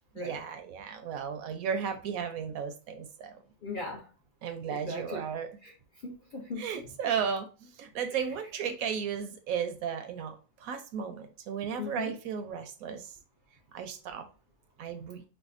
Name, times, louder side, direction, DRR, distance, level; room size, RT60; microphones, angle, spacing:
voice 1, 0.1-3.4 4.4-5.5 6.6-13.1 13.7-14.3 14.8-15.2, right 7 dB, 70° right, 0.9 m, -35 dB
voice 2, 3.6-4.1 4.7-5.2 5.6-5.7 6.0-6.7 8.1-8.2 11.8-12.1, left 3 dB, 50° left, 0.6 m, -38 dB
4.9 x 2.1 x 2.4 m
omnidirectional pair, 1.6 m